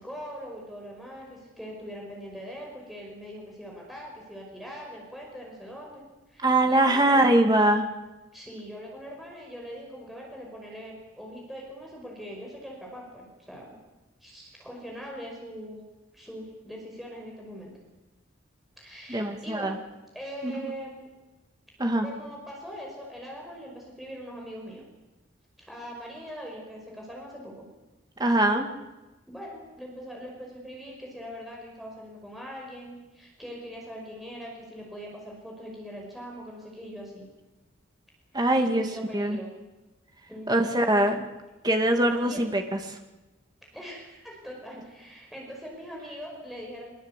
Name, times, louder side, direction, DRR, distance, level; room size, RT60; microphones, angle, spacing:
voice 1, 0.0-6.0 6.3-7.3 8.3-13.8 14.2-15.8 16.1-17.7 18.8-19.8 20.1-21.1 22.0-24.8 25.6-27.7 29.3-37.3 38.6-39.5 40.3-40.7 42.2-42.4 43.7-46.9, equal, ahead, -2 dB, 5.4 m, -41 dB
voice 2, 6.4-7.9 19.1-19.8 20.4-20.5 21.8-22.1 28.2-28.7 38.3-38.8 39.1-39.4 40.5-41.2 41.6-42.8, right 1 dB, 20° right, 4 dB, 2.1 m, -22 dB
23.5 x 22.5 x 8.3 m, 1.1 s
head